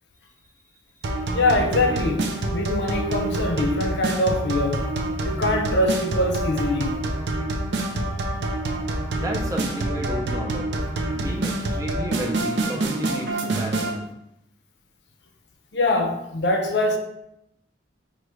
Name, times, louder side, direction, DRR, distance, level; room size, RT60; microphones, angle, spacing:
sound 1, 1.0-14.0, right 2 dB, 80° right, 0.5 m, -27 dB
voice 1, 1.3-4.8 5.2-6.9 15.7-17.0, left 2 dB, 75° left, 0.6 m, -23 dB
voice 2, 9.2-10.7 11.1-14.1, equal, 20° right, 0.5 m, -32 dB
4.7 x 2.5 x 3.1 m
head